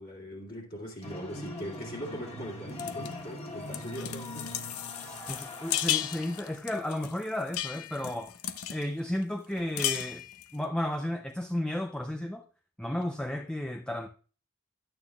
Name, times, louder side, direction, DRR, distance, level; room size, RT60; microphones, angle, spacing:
voice 1, 0.0-4.5 5.1-5.3, equal, 45° left, 2.3 m, -41 dB
sound 1, 1.0-6.6, left 1 dB, 30° left, 1.5 m, -41 dB
sound 2, 2.8-3.1 3.7-8.9 9.2-9.3 9.6-10.5, left 12 dB, 80° left, 0.7 m, -35 dB
voice 2, 5.0-8.3 8.7-10.2 10.5-12.4 12.8-14.1, left 1 dB, 5° left, 0.4 m, -33 dB
11.5 x 8.9 x 2.3 m
head